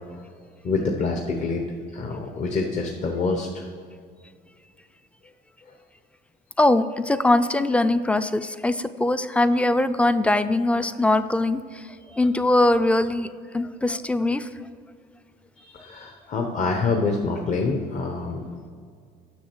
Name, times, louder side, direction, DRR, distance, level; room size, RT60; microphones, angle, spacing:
voice 1, 0.6-1.7 1.9-3.6 5.7-5.8 12.0-12.2 15.6-18.7, left 3 dB, 45° left, 2 dB, 0.9 m, -26 dB
voice 2, 6.6-11.6 12.2-14.5, left 2 dB, 5° left, 12 dB, 0.4 m, -21 dB
7.3 x 6.2 x 6.1 m, 2.1 s
cardioid pair, 110°, 17 cm